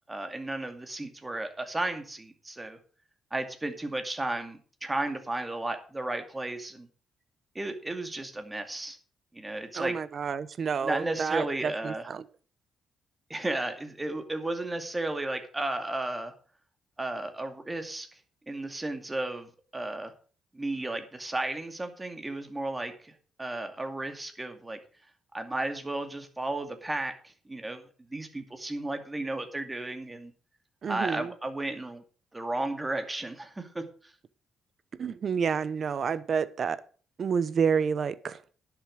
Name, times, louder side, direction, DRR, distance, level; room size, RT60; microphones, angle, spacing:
voice 1, 0.1-2.8 3.3-6.9 7.5-9.0 9.3-10.0 10.8-12.1 13.3-16.3 17.0-18.1 18.5-20.1 20.5-23.1 23.4-24.8 25.3-30.3 30.9-32.0 32.3-33.8, right 2 dB, 15° right, 7 dB, 2.4 m, -34 dB
voice 2, 9.7-12.2 30.8-31.3 35.0-36.8 37.2-38.4, right 6 dB, 50° right, 17 dB, 0.9 m, -29 dB
11.0 x 7.2 x 6.4 m, 0.40 s
cardioid pair, 90°, 0 cm